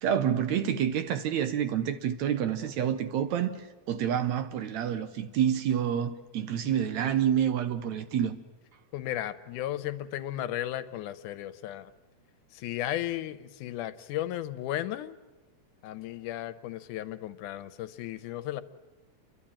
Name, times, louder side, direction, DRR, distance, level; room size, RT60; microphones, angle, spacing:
voice 1, 0.0-8.4, right 9 dB, 75° right, 2.0 m, -28 dB
voice 2, 8.9-11.9 12.5-15.2 15.8-18.6, left 13 dB, 90° left, 2.3 m, -35 dB
29.5 x 11.5 x 8.8 m
omnidirectional pair, 3.5 m